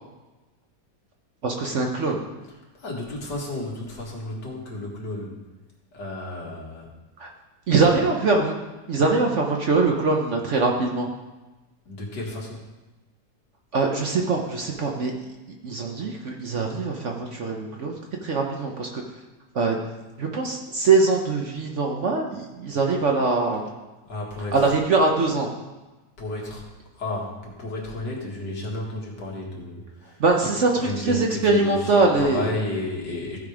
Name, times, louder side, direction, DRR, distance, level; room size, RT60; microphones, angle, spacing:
voice 1, 1.4-2.2 7.2-7.3 7.7-8.5 8.9-11.1 13.7-15.1 15.6-17.9 18.2-19.0 19.5-19.8 20.2-23.6 24.5-25.5 30.2-32.5, right 3 dB, 50° right, 1 dB, 1.0 m, -22 dB
voice 2, 2.7-5.4 5.9-6.9 7.8-8.0 11.9-12.6 24.1-24.6 26.2-26.6 27.0-30.2 30.7-33.4, left 2 dB, 70° left, -2 dB, 2.5 m, -32 dB
15.0 x 5.2 x 4.9 m, 1.1 s
omnidirectional pair, 1.9 m